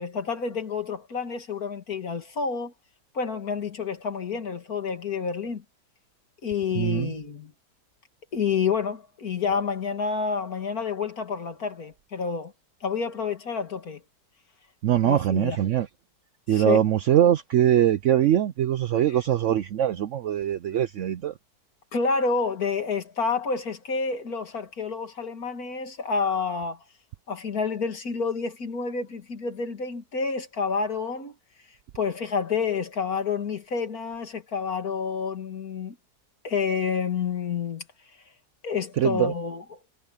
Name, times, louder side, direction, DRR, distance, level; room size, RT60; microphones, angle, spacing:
voice 1, 0.0-2.7 3.1-5.6 6.4-7.5 8.3-12.5 12.8-14.0 15.0-15.6 16.5-16.8 21.9-26.8 27.3-31.3 31.9-36.0 36.4-37.8 38.6-39.8, left 5 dB, 65° left, 2.6 m, -29 dB
voice 2, 6.7-7.1 14.8-15.9 16.5-21.3 39.0-39.3, right 11 dB, 65° right, 0.7 m, -22 dB
omnidirectional pair, 1.7 m